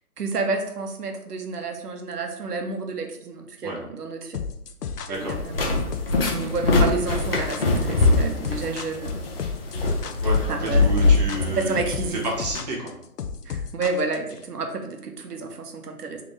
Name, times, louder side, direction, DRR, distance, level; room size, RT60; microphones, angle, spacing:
voice 1, 0.2-4.4 5.1-5.7 6.3-9.2 10.5-10.8 11.6-12.3 13.4-16.2, right 4 dB, 85° right, 4 dB, 0.9 m, -30 dB
sound 1, 4.3-14.4, left 6 dB, 85° left, 0.7 m, -32 dB
sound 2, 5.1-12.6, left 3 dB, 40° left, 0.9 m, -23 dB
voice 2, 10.2-11.8 12.1-12.9, right 1 dB, 25° right, -4 dB, 0.9 m, -30 dB
3.8 x 3.3 x 3.3 m, 0.80 s
hypercardioid pair, 160°, 45 cm